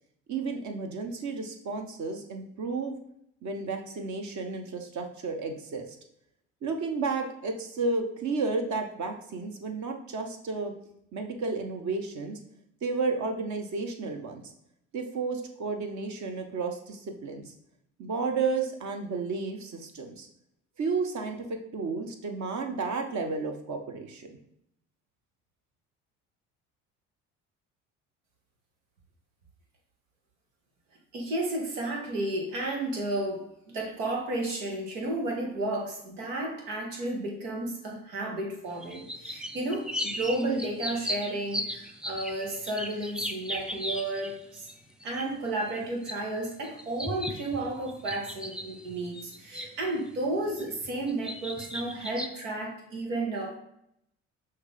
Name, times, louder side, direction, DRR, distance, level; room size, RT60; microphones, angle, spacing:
voice 1, 0.3-3.0 3.4-5.9 6.6-10.7 11.1-12.4 12.8-14.4 14.9-17.5 18.0-20.3 20.8-24.4, right 4 dB, 45° right, 4 dB, 0.9 m, -32 dB
voice 2, 31.1-44.7 45.0-53.6, right 2 dB, 85° right, 0 dB, 1.2 m, -32 dB
sound 1, 38.7-44.7 45.0-50.2 50.5-52.3, equal, ahead, 0.4 m, -37 dB
5.7 x 2.8 x 3.4 m, 0.76 s
hypercardioid pair, 65°, 38 cm